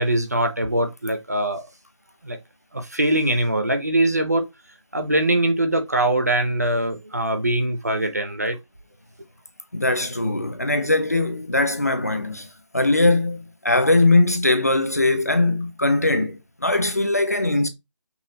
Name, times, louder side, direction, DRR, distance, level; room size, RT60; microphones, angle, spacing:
voice 1, 0.0-1.7 2.2-2.4 2.7-4.5 4.9-8.6 10.8-10.9, right 1 dB, 35° right, 0.5 m, -22 dB
voice 2, 9.7-12.5 12.7-17.7, left 2 dB, 30° left, 0.5 m, -20 dB
5.5 x 2.3 x 3.9 m
figure-of-eight pair, 175°, 16 cm